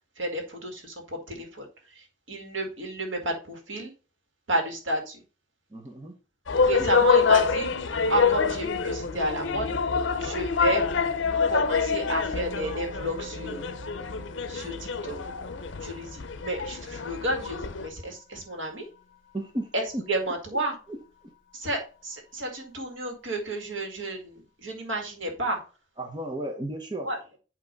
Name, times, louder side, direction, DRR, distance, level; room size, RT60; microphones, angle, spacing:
voice 1, 0.2-1.7 1.9-3.9 4.5-5.2 6.6-7.7 8.1-9.7 10.2-10.8 11.5-13.6 14.5-15.2 15.8-18.8 19.7-20.7 21.5-25.6 27.0-27.2, right 1 dB, 85° right, 2 dB, 2.0 m, -31 dB
voice 2, 5.7-6.1 6.8-6.9 19.3-19.7 19.9-20.3 21.2-21.3 26.0-27.1, right 1 dB, 25° right, 3 dB, 0.9 m, -34 dB
sound 1, 6.5-17.9, left 5 dB, 75° left, 0.6 m, -26 dB
Musical instrument, 12.3-21.9, right 2 dB, 50° left, 1.3 m, -45 dB
8.5 x 3.0 x 5.2 m, 0.35 s
head